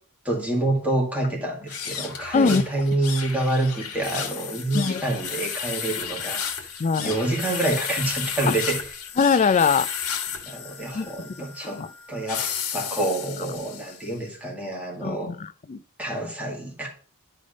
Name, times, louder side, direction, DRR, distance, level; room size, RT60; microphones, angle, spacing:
voice 1, 0.3-6.4 7.0-8.8 10.4-11.8 12.1-15.3 16.0-16.9, right 2 dB, 5° right, 1.9 m, -27 dB
sound 1, 1.6-14.1, left 7 dB, 80° left, 1.4 m, -33 dB
voice 2, 6.8-7.1 8.5-8.6 9.2-9.9 10.9-11.1 11.4-11.5 11.7-11.9 15.0-15.8, left 5 dB, 35° left, 0.4 m, -22 dB
9.8 x 3.4 x 5.1 m
head